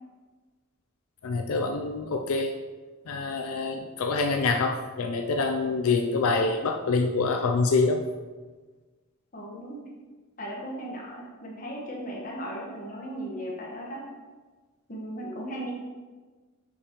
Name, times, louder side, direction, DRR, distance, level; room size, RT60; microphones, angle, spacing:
voice 1, 1.2-2.6 3.1-8.0, left 3 dB, 85° left, 4 dB, 0.4 m, -26 dB
voice 2, 9.3-9.9 10.4-14.0 14.9-15.7, equal, 40° left, -2 dB, 1.3 m, -37 dB
6.3 x 6.0 x 3.0 m, 1.3 s
head